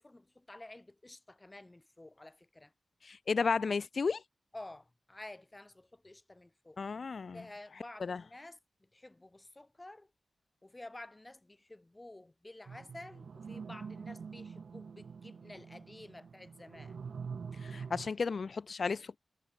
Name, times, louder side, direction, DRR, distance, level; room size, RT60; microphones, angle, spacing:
voice 1, 0.0-2.7 4.5-6.8 7.3-10.1 10.6-17.0, left 2 dB, 15° left, 4.9 m, -51 dB
voice 2, 3.1-4.2 6.8-7.4 8.0-8.2 17.6-19.2, left 5 dB, 55° left, 0.4 m, -33 dB
sound 1, 12.7-18.1, right 5 dB, 65° right, 1.4 m, -45 dB
wide cardioid pair, 125°, 0 cm